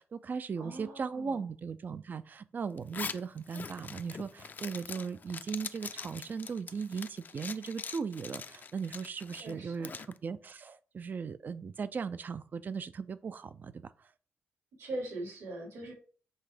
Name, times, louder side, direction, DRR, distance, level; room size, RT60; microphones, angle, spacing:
voice 1, 0.0-13.9, right 5 dB, 40° right, 0.5 m, -38 dB
voice 2, 0.6-1.4 9.3-9.9 14.8-15.9, right 1 dB, 75° right, 3.8 m, -41 dB
Zipper (clothing), 2.8-10.1, left 5 dB, 40° left, 0.5 m, -43 dB
8.0 x 3.5 x 5.0 m
cardioid pair, 110°, 5 cm